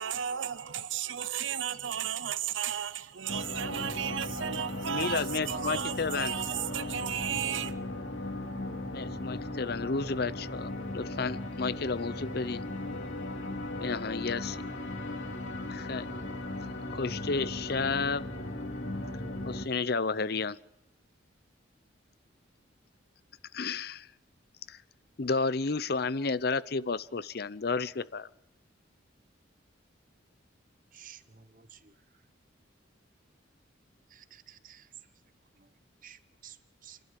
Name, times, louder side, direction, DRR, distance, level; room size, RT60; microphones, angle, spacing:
voice 1, 0.0-7.7, right 9 dB, 75° right, 0.6 m, -34 dB
sound 1, 3.3-19.6, left 1 dB, 75° left, 2.8 m, -37 dB
voice 2, 4.9-6.4 8.9-12.6 13.8-14.6 15.7-16.1 16.9-18.3 19.4-20.6 23.5-24.1 24.7-24.8 25.2-28.3, left 4 dB, 50° left, 0.7 m, -32 dB
voice 3, 30.9-31.9 34.1-34.9 36.0-36.6 36.8-37.0, right 10 dB, 45° right, 1.1 m, -52 dB
30.0 x 12.0 x 7.5 m
head